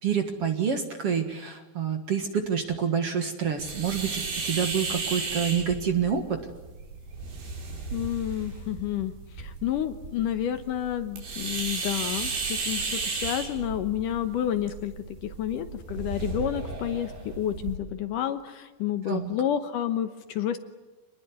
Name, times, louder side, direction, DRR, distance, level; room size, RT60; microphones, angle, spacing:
voice 1, 0.0-6.4 19.1-19.3, right 7 dB, 50° right, 6 dB, 2.2 m, -27 dB
sound 1, 3.6-17.8, right 4 dB, 85° right, 6.7 m, -34 dB
voice 2, 7.9-14.9 15.2-20.6, left 11 dB, 70° left, 10 dB, 2.3 m, -30 dB
27.0 x 20.0 x 9.6 m, 1.2 s
omnidirectional pair, 4.4 m